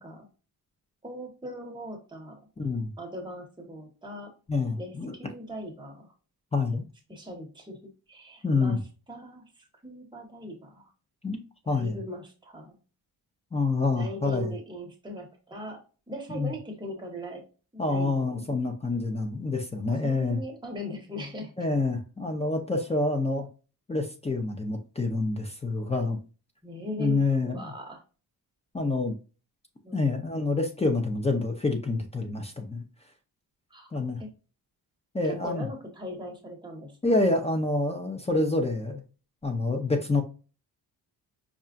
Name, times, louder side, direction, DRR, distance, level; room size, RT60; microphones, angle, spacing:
voice 1, 1.0-2.4 3.0-4.3 4.8-6.1 7.1-7.8 8.1-8.8 9.1-10.9 11.6-12.8 13.9-15.8 16.1-17.4 17.7-18.5 19.9-21.5 26.6-28.0 29.8-30.5 33.7-33.9 34.2-34.3 35.2-37.2, equal, 10° right, 0 dB, 1.1 m, -40 dB
voice 2, 2.6-2.9 4.5-5.1 6.5-6.8 8.4-8.8 11.2-11.4 11.7-12.0 13.5-14.5 16.3-16.5 17.8-20.4 21.6-23.5 23.9-26.2 27.0-27.7 28.7-29.1 29.9-32.8 33.9-34.2 35.1-35.7 37.0-39.0 39.4-40.2, left 3 dB, 15° left, 4 dB, 0.5 m, -27 dB
5.5 x 2.4 x 2.4 m, 0.34 s
wide cardioid pair, 175°, 38 cm